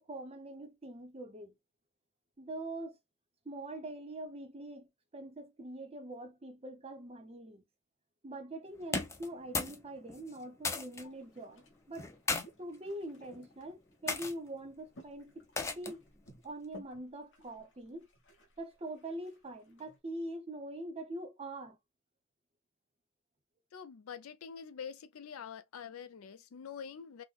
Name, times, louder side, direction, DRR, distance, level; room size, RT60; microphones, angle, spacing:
voice 1, 0.0-1.6 2.4-3.0 3.4-4.9 5.1-7.6 8.2-12.1 12.6-15.4 15.8-16.0 16.4-18.1 18.6-21.8, right 1 dB, 30° right, 0.6 m, -43 dB
sound 1, 8.8-9.8 10.1-11.0 11.9-12.4 13.2-13.5 14.1-14.3 15.6-16.0, left 3 dB, 15° left, 0.3 m, -35 dB
sound 2, 11.0-20.0, equal, 55° left, 1.1 m, -57 dB
voice 2, 23.7-27.2, left 7 dB, 75° left, 0.4 m, -46 dB
3.8 x 2.1 x 2.4 m
head